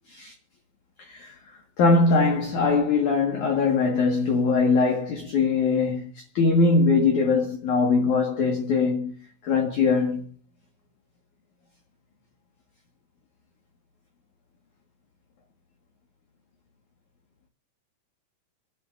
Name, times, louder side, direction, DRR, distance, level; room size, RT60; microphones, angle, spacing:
voice 1, 1.0-1.3 1.8-6.0 6.3-9.1 9.4-10.3, left 4 dB, 55° left, 2.7 m, -21 dB
27.5 x 10.5 x 2.6 m
omnidirectional pair, 4.9 m